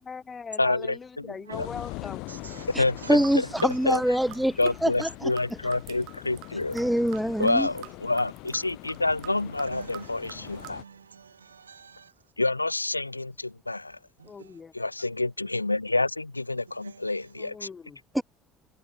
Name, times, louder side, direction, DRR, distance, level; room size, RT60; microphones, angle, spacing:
voice 1, 0.0-2.5 14.2-14.9 17.3-18.0, left 5 dB, 30° left, 1.4 m, -41 dB
voice 2, 0.6-1.0 1.6-1.7 2.8-4.0 4.6-6.8 7.4-10.8 12.4-14.0 14.7-17.7, left 2 dB, 90° left, 0.4 m, -28 dB
sound 1, 1.5-10.8, left 24 dB, 60° left, 0.7 m, -43 dB
voice 3, 2.3-3.7 9.3-12.1 14.2-14.5 16.8-17.3, right 6 dB, 80° right, 0.4 m, -47 dB
voice 4, 3.1-5.3 6.7-7.7 18.2-18.3, equal, 5° right, 0.3 m, -25 dB
sound 2, 3.1-10.7, right 23 dB, 60° right, 2.2 m, -47 dB
figure-of-eight pair, 60°, 0 cm